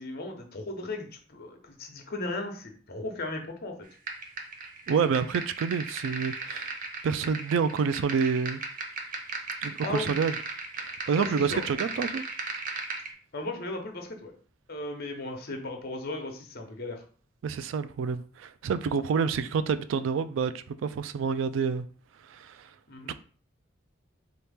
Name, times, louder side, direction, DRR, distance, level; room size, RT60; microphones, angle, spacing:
voice 1, 0.0-3.9 9.8-10.1 11.2-11.6 13.3-14.3 14.7-17.0 22.9-23.1, left 2 dB, 55° left, 0.9 m, -36 dB
sound 1, 4.1-13.1, right 4 dB, 45° right, 0.7 m, -37 dB
voice 2, 4.9-6.7 7.0-8.6 9.6-10.4 11.1-12.2 17.4-21.9 22.3-22.7 23.1-23.2, right 6 dB, 85° right, 0.3 m, -28 dB
3.9 x 2.9 x 3.5 m
head